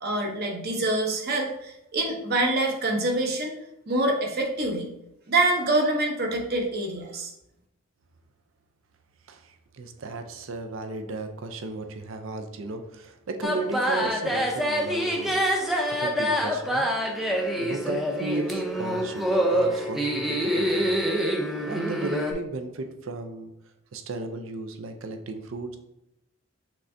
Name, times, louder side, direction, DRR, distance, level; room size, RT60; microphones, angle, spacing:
voice 1, 0.0-3.6 3.9-4.9 5.3-7.3, right 2 dB, 45° right, 1 dB, 0.8 m, -25 dB
voice 2, 9.3-15.5 15.9-16.9 17.6-20.9 21.7-23.5 23.9-25.8, right 2 dB, 70° right, 6 dB, 0.5 m, -35 dB
sound 1, 13.4-22.3, equal, ahead, 0.5 m, -26 dB
6.1 x 3.3 x 2.6 m, 0.86 s
head